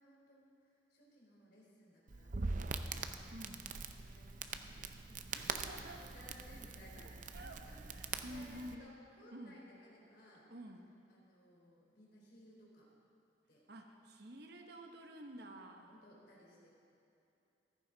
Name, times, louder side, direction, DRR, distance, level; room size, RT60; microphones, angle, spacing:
voice 1, 0.0-3.2 3.6-10.5 11.1-12.9 13.5-13.6 15.9-16.7, equal, 60° left, -4 dB, 3.7 m, -61 dB
Crackle, 2.1-8.7, right 4 dB, 45° right, 0.6 m, -43 dB
voice 2, 3.3-3.7 5.3-6.0 7.3-7.7 7.9-8.9 9.3-9.6 10.5-10.9 13.7-15.9, right 1 dB, 60° right, 4 dB, 1.1 m, -50 dB
14.5 x 14.0 x 4.0 m, 2.7 s
head